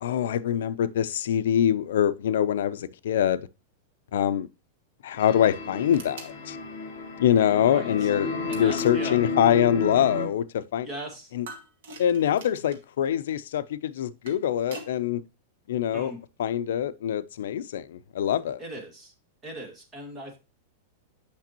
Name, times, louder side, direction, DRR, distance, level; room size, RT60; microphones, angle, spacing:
voice 1, 0.0-3.5 4.1-4.5 5.0-6.6 7.2-10.9 11.3-11.5 12.0-15.2 15.7-16.1 16.4-18.6, left 10 dB, 70° left, 0.5 m, -24 dB
sound 1, 5.1-10.3, left 3 dB, 45° left, 2.7 m, -32 dB
sound 2, 5.9-6.4 8.5-9.0 11.5-12.9 14.0-14.9, right 3 dB, 65° right, 2.6 m, -44 dB
voice 2, 7.6-8.1 8.5-9.2 10.8-11.3 15.9-16.2 18.6-19.1 19.4-20.4, right 1 dB, 15° right, 1.9 m, -39 dB
8.5 x 6.0 x 2.9 m
supercardioid pair, 175°, 0 cm